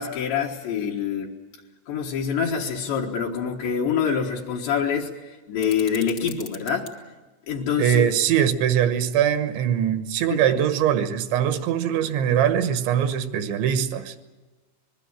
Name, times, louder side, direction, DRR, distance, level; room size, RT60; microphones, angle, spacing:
voice 1, 0.0-1.3 1.9-6.9 7.5-8.1 10.3-10.4, left 7 dB, 70° left, 3.7 m, -26 dB
sound 1, 5.6-6.9, left 5 dB, 50° left, 1.5 m, -42 dB
voice 2, 7.8-14.1, right 9 dB, 75° right, 3.3 m, -22 dB
26.0 x 21.5 x 7.5 m
omnidirectional pair, 5.5 m